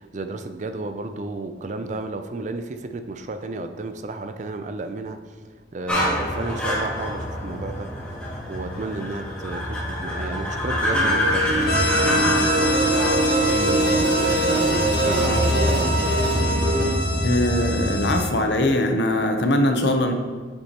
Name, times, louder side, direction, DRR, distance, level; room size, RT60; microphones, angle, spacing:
voice 1, 0.0-5.4 5.7-7.9 8.5-11.4 11.9-16.7, right 2 dB, 40° right, 8 dB, 0.5 m, -32 dB
sound 1, 5.9-18.3, left 1 dB, 5° left, 2.1 m, -26 dB
sound 2, 10.9-16.9, right 2 dB, 75° right, 0.9 m, -23 dB
sound 3, 11.7-18.3, equal, 60° left, 1.2 m, -27 dB
voice 2, 17.2-20.1, left 1 dB, 75° left, 5 dB, 0.8 m, -21 dB
7.9 x 6.8 x 3.0 m, 1.5 s
head